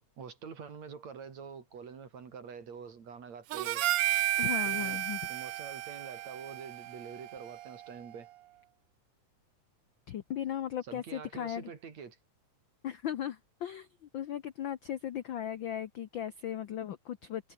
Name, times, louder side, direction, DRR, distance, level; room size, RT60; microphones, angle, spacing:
voice 1, 0.0-3.9 4.7-5.0 5.3-8.3 10.8-12.2, right 6 dB, 60° right, 4.4 m, -46 dB
Harmonica, 3.5-8.0, right 15 dB, 90° right, 1.3 m, -33 dB
voice 2, 4.4-5.2 10.1-11.7 12.8-17.5, left 10 dB, 90° left, 1.0 m, -37 dB
omnidirectional pair, 3.5 m